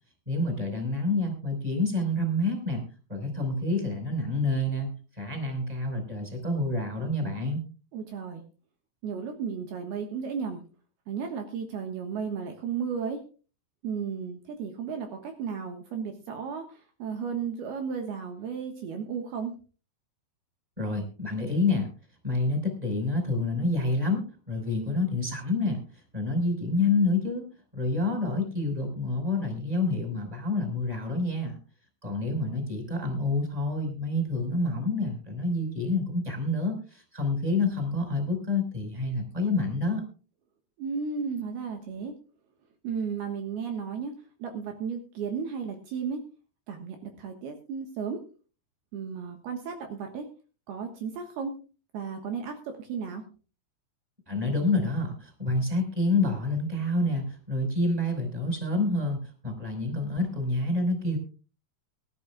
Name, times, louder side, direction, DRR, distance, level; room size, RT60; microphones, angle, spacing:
voice 1, 0.3-2.8 3.1-7.6 20.8-21.9 22.2-25.8 26.1-27.4 27.7-31.6 32.0-40.0 54.3-61.2, left 2 dB, 10° right, 3 dB, 4.7 m, -28 dB
voice 2, 7.9-8.4 9.0-10.6 11.1-13.2 13.8-19.5 40.8-42.2 42.8-44.1 44.4-46.2 46.7-48.2 48.9-50.3 50.7-51.6 51.9-53.3, right 6 dB, 70° right, 4 dB, 3.2 m, -34 dB
23.0 x 12.0 x 2.4 m, 0.36 s
omnidirectional pair, 4.9 m